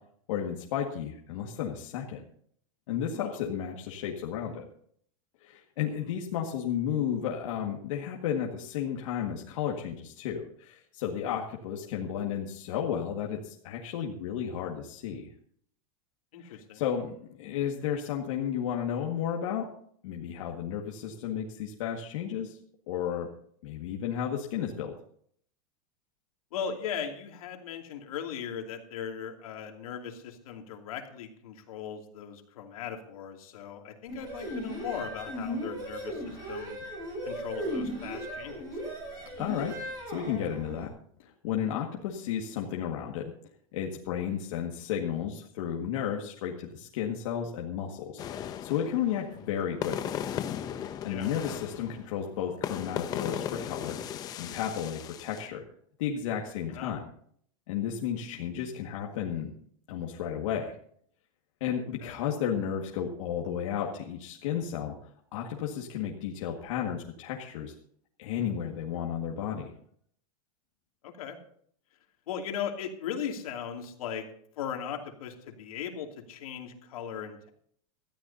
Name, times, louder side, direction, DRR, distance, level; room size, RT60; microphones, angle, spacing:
voice 1, 0.3-2.2 2.9-4.6 5.4-15.3 16.4-19.7 20.0-22.6 22.9-23.3 23.6-24.9 39.4-40.9 41.2-43.3 43.7-50.1 50.8-54.0 54.4-55.6 56.0-57.1 57.7-59.5 59.9-60.7 61.6-64.9 65.3-67.7 68.2-69.7, left 9 dB, 65° left, -1 dB, 1.9 m, -33 dB
voice 2, 16.3-16.8 26.5-36.8 37.2-38.8 51.1-51.3 56.7-56.9 58.4-58.6 62.0-62.1 71.0-71.4 72.3-74.3 74.6-77.5, left 8 dB, 80° left, 2 dB, 2.8 m, -38 dB
sound 1, 34.1-40.9, equal, 25° right, 7.1 m, -37 dB
sound 2, 48.2-55.5, left 9 dB, 20° left, 0.7 m, -37 dB
18.5 x 13.5 x 2.8 m, 0.62 s
supercardioid pair, 165°, 18 cm